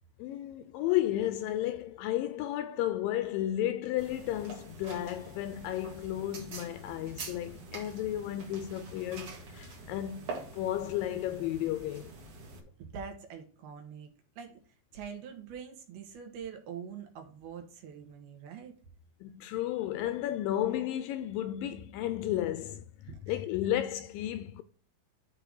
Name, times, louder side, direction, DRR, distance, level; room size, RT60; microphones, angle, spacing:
voice 1, 0.2-12.1 19.2-24.6, left 13 dB, 80° left, 2.1 m, -33 dB
sound 1, 4.0-12.6, right 3 dB, 50° right, 2.1 m, -45 dB
voice 2, 12.8-14.6 14.9-18.8 23.1-23.7, right 7 dB, 85° right, 3.5 m, -44 dB
12.0 x 4.1 x 4.7 m
omnidirectional pair, 4.3 m